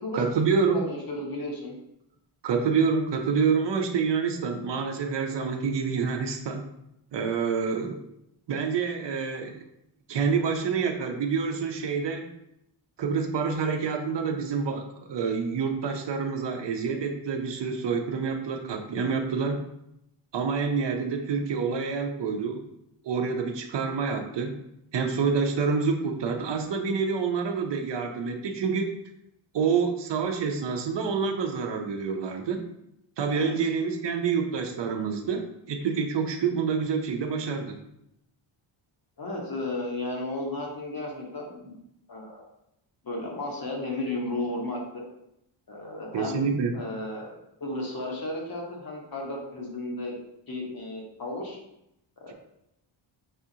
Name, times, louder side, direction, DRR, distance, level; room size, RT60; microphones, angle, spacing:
voice 1, 0.1-0.8 2.4-6.6 7.1-8.0 8.5-9.6 10.1-12.3 13.0-19.6 20.3-22.6 23.0-24.6 24.9-28.9 29.5-32.6 33.2-35.4 35.7-37.8 46.1-46.7, right 5 dB, 60° right, 4 dB, 0.6 m, -27 dB
voice 2, 0.7-1.7 33.3-33.5 39.2-41.7 42.1-42.4 43.0-45.0 45.7-46.4 46.7-47.3 47.6-50.2 50.5-51.6 52.2-52.3, left 2 dB, 45° left, -1 dB, 1.3 m, -34 dB
5.7 x 2.4 x 2.8 m, 0.81 s
cardioid pair, 70°, 49 cm